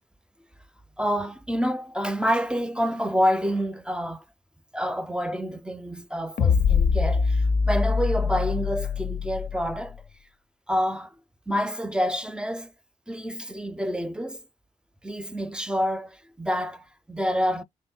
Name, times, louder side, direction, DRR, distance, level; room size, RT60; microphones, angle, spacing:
voice 1, 1.0-4.2 4.7-10.0 10.7-11.1 11.5-12.7 13.1-14.4 15.0-17.6, equal, 5° right, 0.6 m, -28 dB
sound 1, 6.4-9.8, left 5 dB, 60° left, 0.6 m, -23 dB
3.6 x 2.1 x 3.8 m
supercardioid pair, 40°, 15 cm